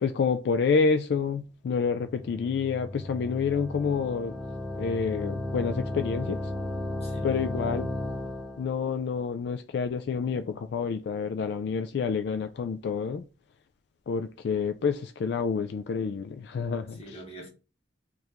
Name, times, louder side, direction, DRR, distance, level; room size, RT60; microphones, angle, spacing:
voice 1, 0.0-4.3 4.7-6.4 7.2-7.9 8.6-13.2 14.1-17.2, left 5 dB, 65° left, 0.3 m, -28 dB
sound 1, 1.9-8.7, left 1 dB, 5° left, 0.5 m, -34 dB
voice 2, 7.0-7.4 17.0-17.5, right 1 dB, 35° left, 1.1 m, -46 dB
4.5 x 2.5 x 3.4 m
head